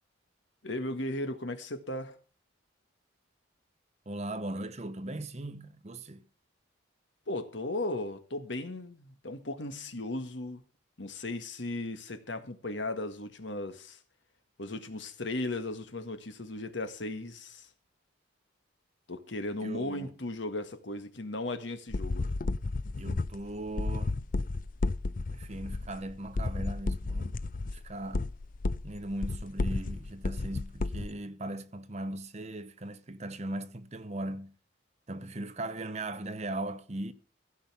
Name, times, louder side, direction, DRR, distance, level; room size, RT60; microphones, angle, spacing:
voice 1, 0.6-2.2 7.3-10.6 11.0-14.0 14.6-17.7 19.1-22.3, left 2 dB, 65° left, 1.7 m, -36 dB
voice 2, 4.1-6.2 19.6-20.1 23.0-24.1 25.3-27.3 27.7-28.3 28.8-34.5 35.1-37.1, right 1 dB, 35° right, 0.9 m, -38 dB
sound 1, 21.9-31.1, left 3 dB, 40° left, 0.5 m, -32 dB
16.0 x 5.5 x 8.2 m
head